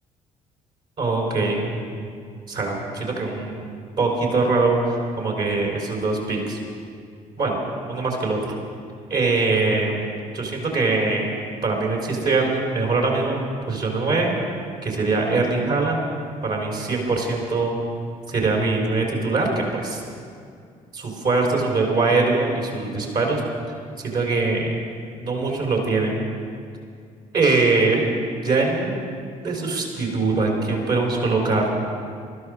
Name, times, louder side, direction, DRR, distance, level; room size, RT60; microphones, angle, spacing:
voice 1, 1.0-2.1 2.5-3.6 4.0-6.6 7.4-7.6 7.9-8.6 9.1-10.0 10.3-11.3 11.6-14.4 14.8-16.0 16.4-17.8 18.3-20.0 20.9-23.4 24.0-24.7 25.2-26.2 27.3-28.1 28.4-29.0 29.4-31.6, right 3 dB, 55° right, -1 dB, 3.6 m, -22 dB
20.0 x 12.5 x 4.8 m, 2.3 s
hypercardioid pair, 50°, 19 cm